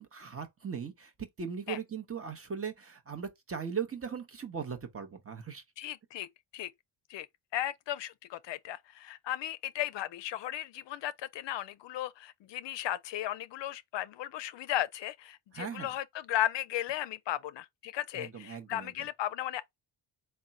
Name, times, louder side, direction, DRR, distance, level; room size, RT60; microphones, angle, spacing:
voice 1, 0.0-5.6 15.5-15.9 18.1-18.9, right 6 dB, 30° right, 0.8 m, -39 dB
voice 2, 5.8-6.3 6.5-6.7 7.1-7.3 7.5-19.8, left 13 dB, 65° left, 0.5 m, -35 dB
3.6 x 2.2 x 4.0 m
cardioid pair, 80°, 49 cm